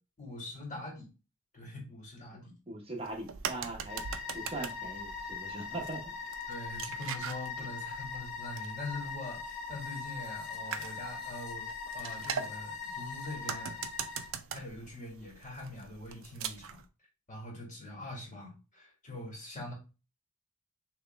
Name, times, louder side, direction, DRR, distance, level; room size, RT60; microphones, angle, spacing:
voice 1, 0.2-1.1 1.5-2.5 6.5-11.7 11.9-13.8 14.5-16.8 17.3-19.7, left 2 dB, 35° left, -2 dB, 2.0 m, -43 dB
voice 2, 2.3-4.0 4.3-6.1, right 2 dB, 25° right, 0 dB, 1.0 m, -41 dB
sound 1, 3.0-16.8, right 7 dB, 70° right, 0.4 m, -43 dB
sound 2, 3.9-14.3, left 5 dB, 60° left, 1.1 m, -41 dB
3.4 x 3.0 x 3.5 m, 0.31 s
head